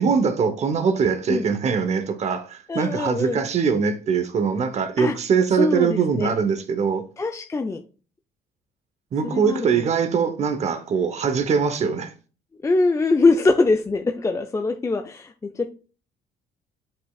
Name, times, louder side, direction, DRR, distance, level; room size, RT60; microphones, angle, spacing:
voice 1, 0.0-7.0 9.1-12.1, right 6 dB, 40° right, 0.9 m, -22 dB
voice 2, 2.7-3.4 5.0-5.1 5.6-6.3 7.2-7.8 9.2-9.7 12.6-15.7, left 3 dB, 15° left, 0.5 m, -22 dB
7.9 x 5.4 x 2.4 m
cardioid pair, 110°, 17 cm